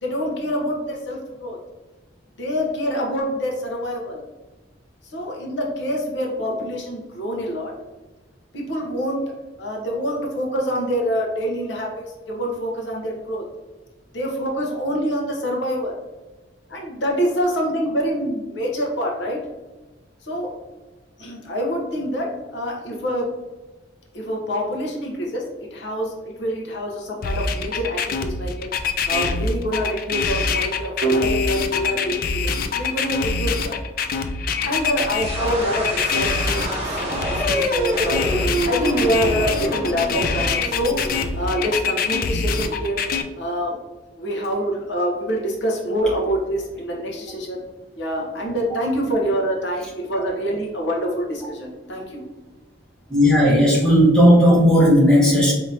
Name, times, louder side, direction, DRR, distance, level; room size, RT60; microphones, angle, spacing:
voice 1, 0.0-1.6 2.4-4.2 5.1-7.7 8.5-9.2 9.6-13.5 14.1-16.0 16.7-19.4 20.2-20.6 21.2-23.3 24.1-25.4 25.7-28.7 29.1-32.1 32.4-33.8 34.6-38.3 38.6-41.0 41.3-43.0 43.4-43.8 44.2-47.6 48.0-52.3, equal, 75° left, -1 dB, 0.8 m, -26 dB
sound 1, 27.2-43.2, left 5 dB, 50° left, 0.3 m, -24 dB
sound 2, 31.0-33.8, equal, 65° right, 0.7 m, -27 dB
sound 3, 35.1-41.9, right 1 dB, 35° right, 1.2 m, -27 dB
voice 2, 53.1-55.5, equal, 5° left, -6 dB, 1.2 m, -14 dB
4.5 x 2.8 x 2.7 m, 1.2 s
head